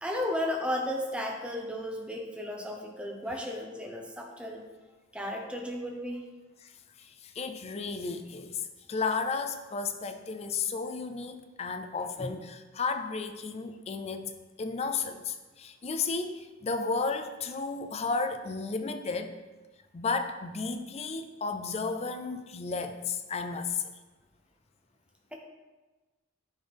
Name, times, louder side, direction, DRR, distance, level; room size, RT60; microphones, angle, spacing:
voice 1, 0.0-4.7 5.1-6.2 25.3-25.4, left 1 dB, 5° right, 1 dB, 0.7 m, -34 dB
voice 2, 7.0-8.6 8.9-14.3 14.6-19.3 19.9-23.8, left 4 dB, 30° left, 8 dB, 0.4 m, -33 dB
10.0 x 4.1 x 3.4 m, 1.2 s
head